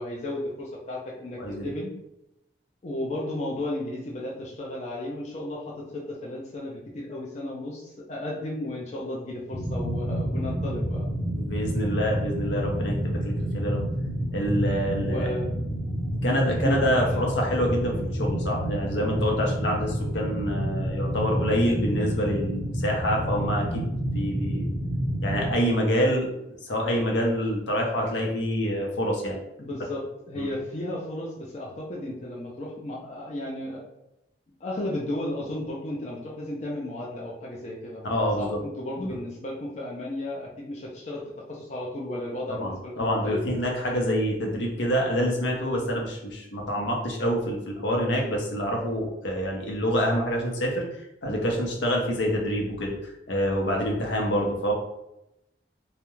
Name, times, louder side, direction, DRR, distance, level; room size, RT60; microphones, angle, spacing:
voice 1, 0.0-1.9 2.8-11.1 15.0-15.6 16.5-17.2 29.6-33.8 34.6-38.0 38.4-41.2 41.5-43.4, left 1 dB, 40° left, -3 dB, 0.4 m, -34 dB
sound 1, 9.5-25.5, equal, 5° left, 0.7 m, -29 dB
voice 2, 11.3-13.8 14.3-15.3 16.2-24.7 25.2-29.4 30.4-30.5 38.0-38.6 39.0-39.2 42.5-42.7 43.0-53.0 53.3-54.7, equal, 90° left, 0 dB, 0.6 m, -27 dB
2.3 x 2.1 x 3.0 m, 0.87 s
head